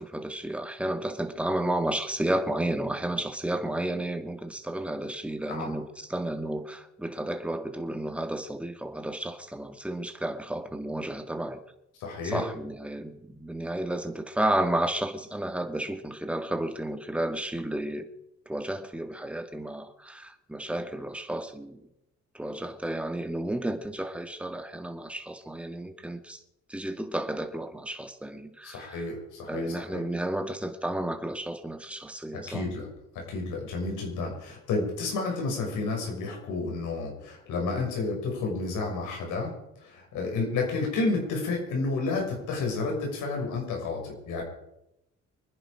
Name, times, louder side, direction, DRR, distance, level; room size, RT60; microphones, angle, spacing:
voice 1, 0.0-11.6 12.2-18.1 18.5-21.8 22.3-26.4 26.7-29.0 29.5-32.6, right 1 dB, 5° right, 6 dB, 1.9 m, -32 dB
voice 2, 12.0-12.4 28.6-30.0 32.5-32.9 33.1-44.4, left 3 dB, 90° left, 1 dB, 6.1 m, -31 dB
24.5 x 10.5 x 5.0 m, 0.84 s
cardioid pair, 90°, 30 cm